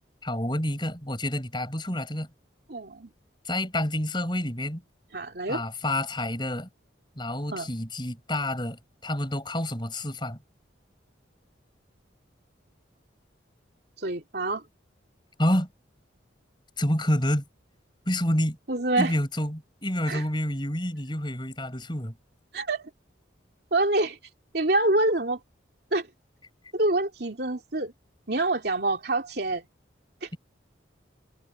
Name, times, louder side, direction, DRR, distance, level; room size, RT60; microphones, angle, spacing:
voice 1, 0.2-2.3 3.4-4.8 5.5-6.7 7.2-10.4 15.4-15.7 16.8-17.4 18.1-18.6 19.0-22.2, left 1 dB, 25° left, 7.1 m, -28 dB
voice 2, 2.7-3.1 5.1-5.6 7.5-7.7 14.0-14.6 18.7-19.1 20.1-20.2 22.5-22.9 23.7-24.2 24.5-25.4 25.9-26.1 26.7-27.9 28.3-29.7 30.2-30.3, right 2 dB, 55° right, 3.0 m, -26 dB
head